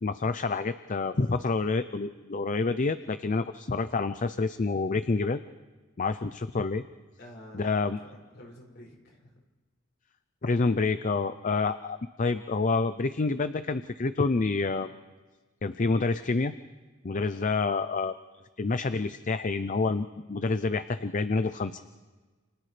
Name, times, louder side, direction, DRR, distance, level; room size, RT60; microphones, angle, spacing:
voice 1, 0.0-5.4 6.0-6.8 7.5-8.0 10.4-14.9 15.6-16.5 17.0-18.1 18.6-21.8, left 3 dB, 40° left, 11 dB, 0.6 m, -28 dB
voice 2, 7.2-9.3 17.3-17.5, equal, 55° left, -2 dB, 6.4 m, -49 dB
30.0 x 29.5 x 3.4 m, 1.3 s
head